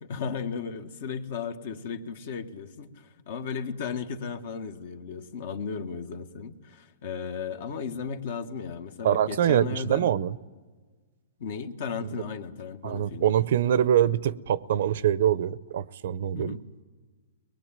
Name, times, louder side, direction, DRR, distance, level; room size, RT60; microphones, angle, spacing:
voice 1, 0.0-10.1 11.4-13.3 16.3-16.6, left 6 dB, 60° left, 1.6 m, -35 dB
voice 2, 9.0-10.4 12.0-12.1 12.8-16.6, right 10 dB, 65° right, 0.6 m, -24 dB
22.5 x 19.5 x 8.9 m
hypercardioid pair, 145°, 0 cm